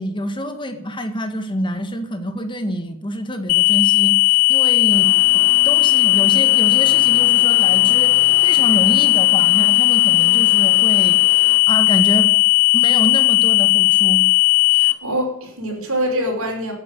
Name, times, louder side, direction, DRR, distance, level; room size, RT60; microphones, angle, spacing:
voice 1, 0.0-12.3 12.7-14.3, equal, 25° left, 7 dB, 1.7 m, -26 dB
sound 1, 3.5-14.9, left 29 dB, 80° left, 1.2 m, -15 dB
sound 2, 4.9-11.6, left 2 dB, 55° left, 2.3 m, -36 dB
voice 2, 14.7-16.7, equal, 80° right, 1 dB, 5.6 m, -24 dB
13.0 x 8.8 x 10.0 m, 0.77 s
head